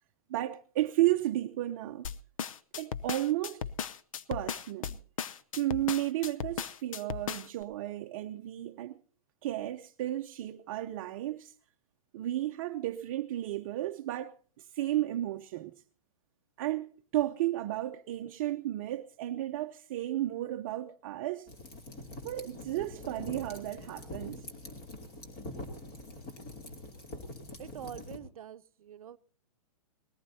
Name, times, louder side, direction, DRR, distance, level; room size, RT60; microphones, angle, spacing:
voice 1, 0.3-2.1 2.8-3.6 4.3-5.0 5.6-8.9 9.4-11.5 12.1-15.8 16.6-21.5 22.2-24.4, right 14 dB, 35° right, 0.7 m, -33 dB
sound 1, 2.0-7.6, left 7 dB, 70° left, 0.7 m, -37 dB
sound 2, 21.5-28.2, left 1 dB, 30° left, 2.8 m, -44 dB
voice 2, 27.6-29.2, right 10 dB, 85° right, 0.7 m, -45 dB
20.5 x 17.5 x 2.8 m
hypercardioid pair, 160°, 18 cm